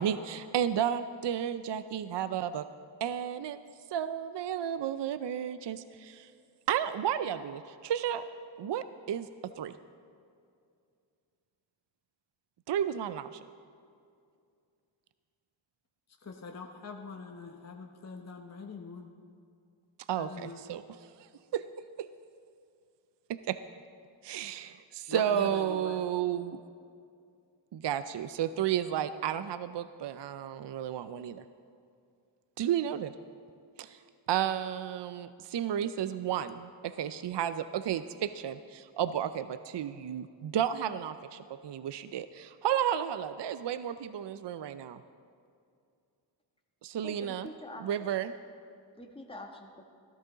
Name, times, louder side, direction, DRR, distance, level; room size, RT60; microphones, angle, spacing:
voice 1, 0.0-2.7 3.0-3.6 3.9-6.3 6.7-8.2 8.6-9.3 9.6-9.7 12.7-13.4 20.1-20.8 21.2-21.6 22.0-22.1 23.5-23.6 24.2-26.6 27.7-31.4 32.6-33.1 33.8-34.0 34.3-45.0 46.8-47.5 47.8-48.3, right 10 dB, 60° right, 0.5 m, -32 dB
voice 2, 16.2-19.1 20.1-20.6 25.1-26.0, left 4 dB, 35° left, 1.0 m, -43 dB
voice 3, 47.0-48.1 49.0-49.8, left 1 dB, 10° left, 1.4 m, -46 dB
14.0 x 13.0 x 4.0 m
cardioid pair, 60°, 48 cm